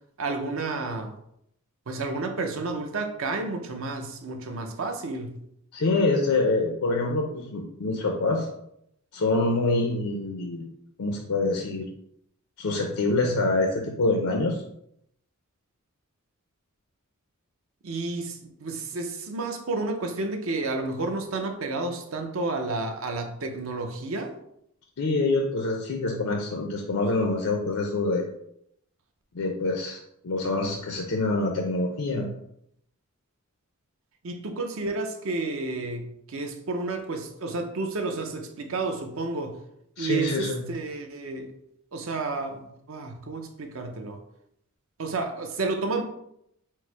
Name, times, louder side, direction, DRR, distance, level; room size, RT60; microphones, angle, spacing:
voice 1, 0.2-1.1 1.9-5.4 17.8-24.3 34.2-39.6 40.0-41.5 41.9-44.2 45.0-46.0, right 3 dB, 65° right, 0.6 m, -31 dB
voice 2, 5.7-8.5 9.1-10.7 11.0-11.9 12.6-14.6 25.0-28.3 29.3-30.0 30.2-32.3 40.0-40.6, left 2 dB, 90° left, 0.6 m, -25 dB
4.6 x 2.0 x 4.5 m
head